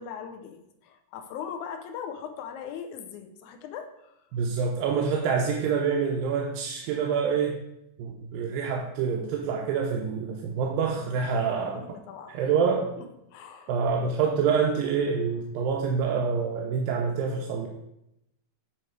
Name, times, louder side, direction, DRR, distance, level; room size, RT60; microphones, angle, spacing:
voice 1, 0.0-4.1 11.3-12.4 13.0-13.1 13.3-13.7 14.0-14.1, left 7 dB, 75° left, 6 dB, 1.8 m, -40 dB
voice 2, 4.3-7.5 8.0-11.8 12.3-12.9 13.7-17.7, right 6 dB, 90° right, 0 dB, 2.4 m, -26 dB
8.6 x 3.2 x 4.6 m, 0.84 s
omnidirectional pair, 4.0 m